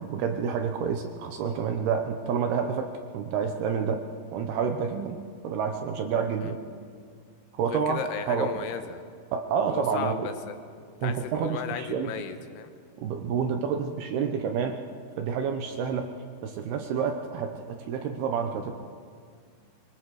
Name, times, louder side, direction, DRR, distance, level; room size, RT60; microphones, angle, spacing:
voice 1, 0.0-2.9 3.1-4.0 4.3-5.2 5.4-6.6 7.5-8.0 8.3-8.5 9.3-10.3 11.0-12.1 13.0-14.8 15.2-16.1 16.4-18.7, right 6 dB, 75° right, 5 dB, 2.5 m, -28 dB
voice 2, 7.6-9.0 9.7-10.3 11.0-12.7, left 9 dB, 80° left, 8 dB, 3.4 m, -35 dB
24.5 x 24.0 x 4.8 m, 2.1 s
omnidirectional pair, 5.4 m